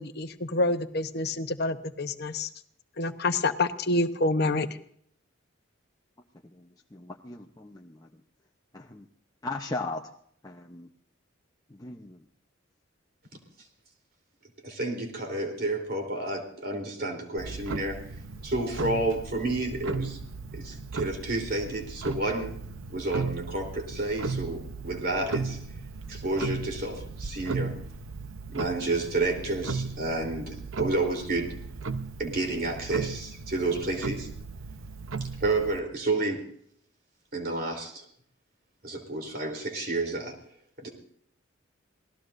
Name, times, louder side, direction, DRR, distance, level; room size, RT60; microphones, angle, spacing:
voice 1, 0.0-2.5 3.0-4.7, left 2 dB, 55° left, 8 dB, 1.0 m, -27 dB
voice 2, 6.5-8.1 8.7-9.1 9.4-10.0 10.4-10.9 11.7-12.2, left 2 dB, 20° left, 1 dB, 0.8 m, -38 dB
voice 3, 14.6-18.0 18.4-20.2 20.5-22.6 22.9-25.6 26.1-27.7 28.5-31.6 32.2-34.3 35.4-36.4 37.3-38.0 38.8-40.4 40.8-40.9, right 2 dB, 50° right, 3 dB, 3.7 m, -30 dB
Clock, 17.4-35.8, right 4 dB, 85° right, 0.8 m, -36 dB
27.0 x 18.5 x 2.6 m, 0.63 s
head